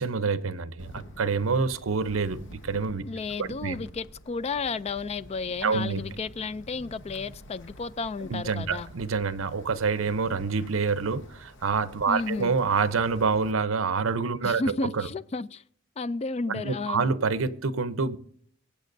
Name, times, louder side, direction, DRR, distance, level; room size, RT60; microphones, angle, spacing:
voice 1, 0.0-3.0 3.4-3.9 5.6-6.0 8.3-14.6 14.9-15.1 16.5-18.2, right 5 dB, 75° right, 0.7 m, -27 dB
Wind, 0.8-13.5, equal, 60° left, 1.2 m, -49 dB
voice 2, 3.0-8.9 12.1-12.6 14.4-15.6 16.0-17.1, left 3 dB, 30° left, 0.4 m, -32 dB
23.5 x 8.4 x 2.6 m
head